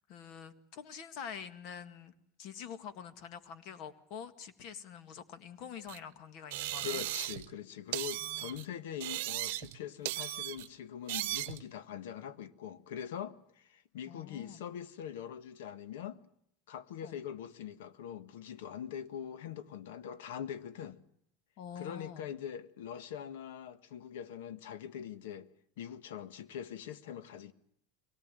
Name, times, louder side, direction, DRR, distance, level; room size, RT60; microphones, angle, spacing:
voice 1, 0.0-2.1 2.4-7.0 8.2-8.6 14.1-14.6 17.0-17.2 21.6-22.3, left 7 dB, 45° left, 1.8 m, -46 dB
sound 1, 5.9-6.0 6.5-7.5 7.9-8.7 9.0-9.8 10.1-10.7 11.1-11.6, right 17 dB, 70° right, 0.9 m, -37 dB
voice 2, 6.8-16.2 16.7-21.0 21.7-25.5 25.8-27.5, left 9 dB, 85° left, 1.5 m, -43 dB
23.5 x 18.0 x 9.1 m
supercardioid pair, 160°, 0 cm